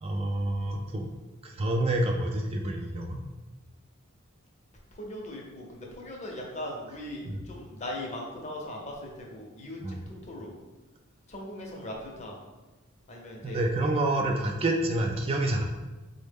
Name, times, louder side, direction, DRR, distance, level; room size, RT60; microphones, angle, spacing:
voice 1, 0.0-1.1 1.4-3.2 7.2-7.4 9.8-10.0 13.4-15.7, right 1 dB, 30° right, 2 dB, 0.3 m, -28 dB
voice 2, 4.9-10.5 11.3-12.4 13.1-13.6, left 1 dB, 35° left, -1 dB, 0.6 m, -39 dB
4.2 x 2.1 x 3.4 m, 1.2 s
head